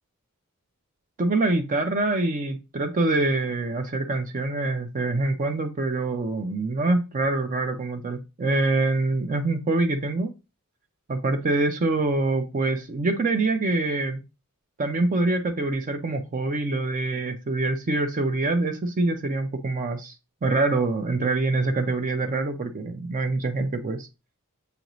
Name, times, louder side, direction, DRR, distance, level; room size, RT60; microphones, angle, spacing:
voice 1, 1.2-10.3 11.1-14.2 14.8-20.1 20.4-24.1, right 2 dB, 35° right, 0.5 m, -25 dB
6.8 x 2.6 x 3.0 m
head